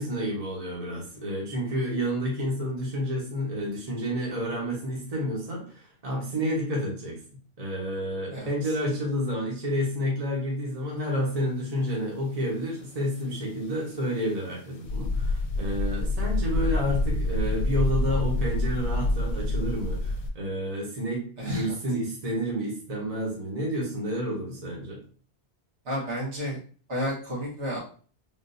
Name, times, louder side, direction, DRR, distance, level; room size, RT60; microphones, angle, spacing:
voice 1, 0.0-7.2 7.6-25.0, equal, 35° right, -2 dB, 1.0 m, -30 dB
sound 1, 14.9-20.3, left 2 dB, 75° left, 0.9 m, -27 dB
voice 2, 21.4-21.7 25.8-26.6 26.9-27.8, equal, 85° right, -6 dB, 1.7 m, -31 dB
3.7 x 2.5 x 2.6 m, 0.42 s
omnidirectional pair, 1.2 m